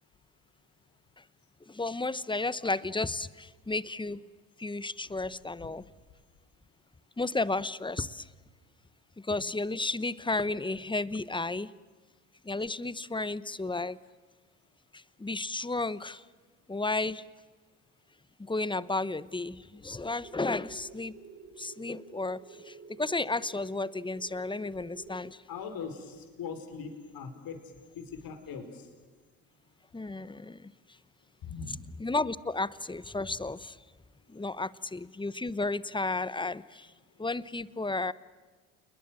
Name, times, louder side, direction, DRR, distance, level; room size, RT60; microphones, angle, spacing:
voice 1, 1.7-4.2 4.6-5.8 7.2-8.2 9.3-11.7 12.4-14.0 15.2-16.2 16.7-17.2 18.5-21.1 21.6-22.4 22.7-25.4 29.9-30.6 32.0-33.7 34.3-36.9 37.2-38.1, left 2 dB, 10° left, 18 dB, 1.0 m, -33 dB
sound 1, 20.2-25.2, right 5 dB, 20° right, 2.5 m, -51 dB
voice 2, 25.5-27.6 27.9-28.9 31.4-31.7, left 6 dB, 60° left, 7 dB, 4.9 m, -40 dB
28.5 x 21.5 x 7.7 m, 1.4 s
hypercardioid pair, 60°, 40 cm